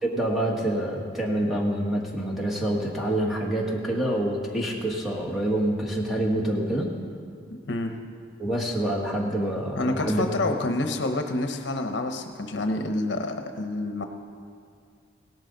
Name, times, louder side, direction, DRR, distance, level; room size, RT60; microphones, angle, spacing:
voice 1, 0.0-6.9 8.4-10.2, right 1 dB, ahead, -3 dB, 1.6 m, -26 dB
voice 2, 7.5-7.9 9.8-14.0, left 2 dB, 65° left, 5 dB, 0.9 m, -28 dB
17.5 x 12.0 x 3.9 m, 2.3 s
head